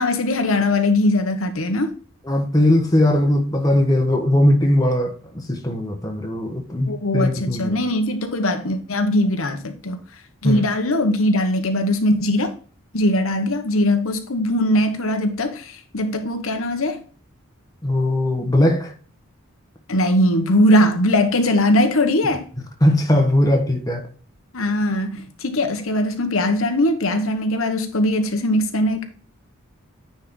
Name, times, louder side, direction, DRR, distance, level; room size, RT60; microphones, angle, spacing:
voice 1, 0.0-1.9 6.9-10.0 10.4-12.5 12.9-17.0 19.9-22.4 24.5-29.1, left 1 dB, 75° left, 1.1 m, -20 dB
voice 2, 2.3-7.8 10.4-10.6 17.8-18.9 22.8-24.1, left 1 dB, 15° left, 1.3 m, -19 dB
9.7 x 4.3 x 3.8 m
head